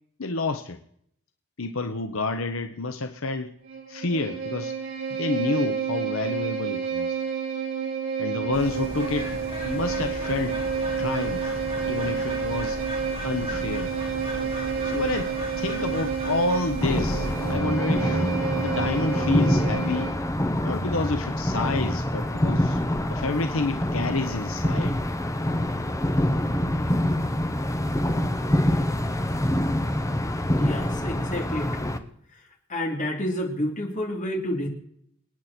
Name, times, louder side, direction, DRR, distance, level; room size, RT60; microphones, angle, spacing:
voice 1, 0.2-0.8 1.6-3.5 3.9-4.8 5.1-7.2 8.2-10.6 11.0-12.8 13.2-13.9 14.8-20.1 20.6-22.8 23.1-25.0, left 3 dB, 75° left, 7 dB, 1.0 m, -29 dB
Bowed string instrument, 3.6-20.3, right 6 dB, 70° right, 3.9 m, -30 dB
Bird, 8.5-17.5, equal, 30° right, 7.4 m, -35 dB
sound 1, 16.8-32.0, left 1 dB, 15° left, 1.1 m, -25 dB
voice 2, 30.5-31.9 32.3-32.4 32.7-34.7, left 1 dB, 35° left, 1 dB, 3.4 m, -29 dB
27.5 x 9.5 x 4.4 m, 0.70 s
head